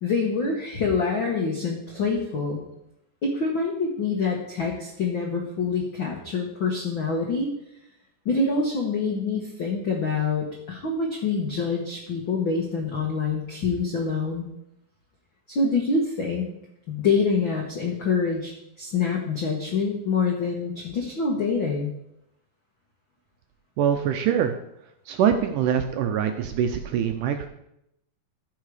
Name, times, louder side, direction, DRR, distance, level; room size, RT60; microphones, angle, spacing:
voice 1, 0.0-2.6 3.2-7.5 8.2-14.5 15.5-16.5 16.9-21.9, left 4 dB, 70° left, 0 dB, 1.1 m, -26 dB
voice 2, 23.8-24.5 25.1-27.5, right 8 dB, 75° right, 6 dB, 2.0 m, -23 dB
14.5 x 5.6 x 4.9 m, 0.80 s
omnidirectional pair, 4.3 m